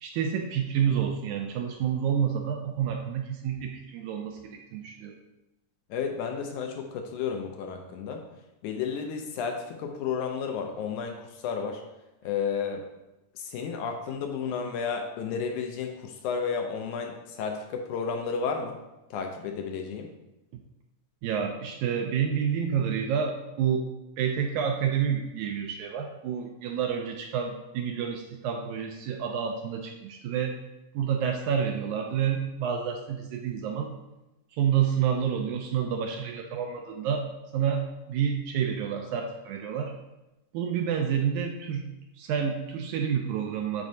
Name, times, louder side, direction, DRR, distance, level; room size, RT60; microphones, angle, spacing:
voice 1, 0.0-5.1 21.2-23.9 24.2-30.6 30.9-33.9 34.5-37.2 37.5-37.8 38.1-39.9 40.5-41.9 42.2-43.9, right 8 dB, 80° right, 3 dB, 1.8 m, -29 dB
voice 2, 5.9-8.3 8.6-11.8 12.2-12.8 13.4-18.8 19.1-20.1, left 6 dB, 80° left, 3 dB, 1.9 m, -32 dB
9.4 x 4.4 x 2.7 m, 0.97 s
omnidirectional pair, 3.8 m